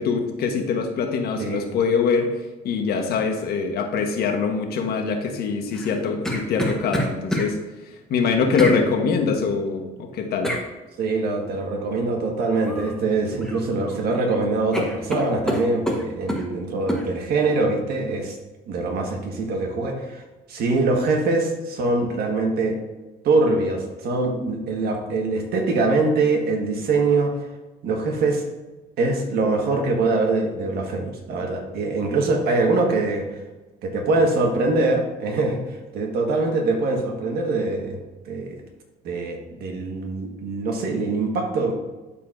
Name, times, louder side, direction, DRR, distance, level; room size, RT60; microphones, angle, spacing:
voice 1, 0.0-2.3 2.6-7.6 8.1-10.5, left 5 dB, 70° left, 4 dB, 1.2 m, -23 dB
sound 1, 5.7-7.5 8.6-8.8 10.4-10.7 12.6-12.9 13.3-14.0 14.3-14.4 14.7-16.5 16.9-17.1, equal, 5° left, 1.1 m, -27 dB
voice 2, 11.0-18.4 18.7-22.8 23.2-27.4 27.8-28.4 29.0-33.4 33.8-38.0 38.2-38.6 39.0-41.7, right 3 dB, 70° right, 2 dB, 1.6 m, -23 dB
12.0 x 4.4 x 2.6 m, 1.1 s
cardioid pair, 110°, 17 cm